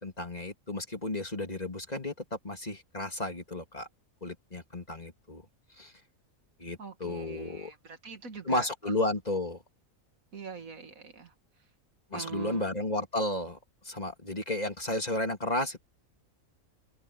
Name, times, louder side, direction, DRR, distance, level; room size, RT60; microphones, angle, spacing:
voice 1, 0.0-3.9 4.2-5.4 5.8-5.9 6.6-7.7 8.4-9.6 12.1-13.6 13.8-15.8, left 1 dB, 30° left, 3.0 m, -33 dB
voice 2, 6.8-8.9 10.3-11.3 12.1-12.7, right 6 dB, 75° right, 2.4 m, -43 dB
open air
omnidirectional pair, 1.4 m